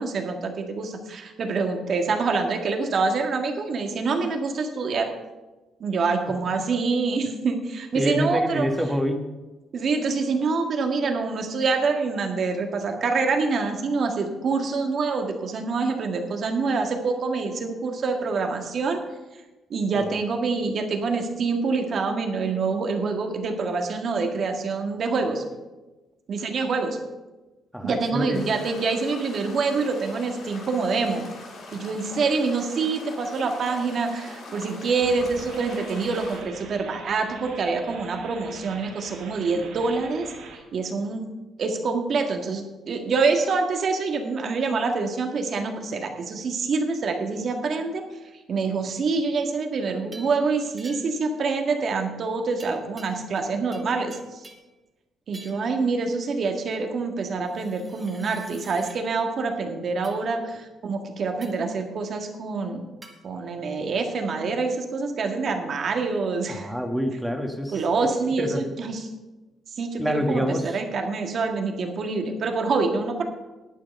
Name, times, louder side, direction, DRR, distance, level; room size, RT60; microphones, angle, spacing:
voice 1, 0.0-5.1 5.8-8.7 9.7-19.0 19.7-25.4 26.3-27.0 27.8-31.2 31.7-40.3 40.7-41.3 41.6-48.0 48.5-54.4 55.3-62.9 63.2-66.7 67.7-69.1 69.8-73.2, right 4 dB, 55° right, 4 dB, 1.9 m, -26 dB
voice 2, 7.9-9.3 20.0-20.1 27.7-28.4 66.5-68.7 70.0-70.8, equal, 5° right, 4 dB, 1.7 m, -27 dB
sound 1, 28.3-36.4, left 2 dB, 65° left, 4.9 m, -42 dB
sound 2, 35.0-40.6, right 5 dB, 90° right, 1.9 m, -43 dB
sound 3, 50.1-50.4 50.8-51.3 52.6-53.5 53.7-54.7 55.3-55.7 57.4-59.0 60.0-60.2 61.4-61.7 63.0-63.2, right 2 dB, 25° right, 2.2 m, -48 dB
11.0 x 9.0 x 5.4 m, 1.1 s
cardioid pair, 90°, 0 cm